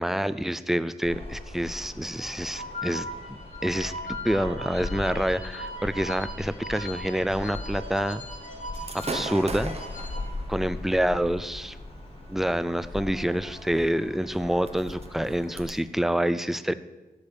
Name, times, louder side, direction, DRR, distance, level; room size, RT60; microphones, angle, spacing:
voice 1, 0.0-8.2 8.9-9.7 10.5-11.8 12.3-16.7, equal, ahead, 13 dB, 0.4 m, -27 dB
sound 1, 1.0-15.7, left 2 dB, 40° left, 1.7 m, -39 dB
sound 2, 2.6-10.2, left 1 dB, 55° left, 1.2 m, -39 dB
Gunshot gunfire / Fireworks, 8.7-15.7, right 3 dB, 40° right, 0.9 m, -41 dB
12.5 x 5.0 x 7.0 m, 1.1 s
wide cardioid pair, 125°, 16 cm